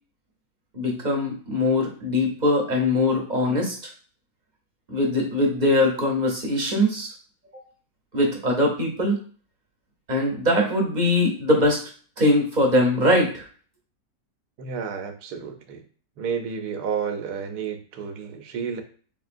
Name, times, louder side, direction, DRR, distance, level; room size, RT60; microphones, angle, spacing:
voice 1, 0.7-3.8 4.9-7.1 8.1-9.2 10.1-11.8 12.2-13.4, left 1 dB, 35° right, 0 dB, 0.8 m, -22 dB
voice 2, 14.6-15.8 16.2-18.8, right 6 dB, 85° right, 6 dB, 1.2 m, -31 dB
3.7 x 3.6 x 2.5 m, 0.42 s
omnidirectional pair, 1.6 m